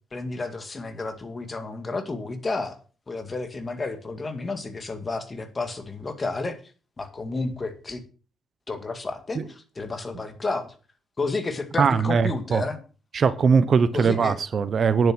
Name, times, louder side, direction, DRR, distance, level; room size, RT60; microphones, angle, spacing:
voice 1, 0.1-2.8 3.1-6.6 7.0-8.0 8.7-9.4 9.8-10.7 11.2-12.8 13.9-14.4, left 3 dB, 30° left, 2.1 m, -31 dB
voice 2, 11.8-12.6 13.1-15.1, right 5 dB, 50° right, 0.9 m, -21 dB
9.5 x 7.7 x 6.2 m
cardioid pair, 90°, 0 cm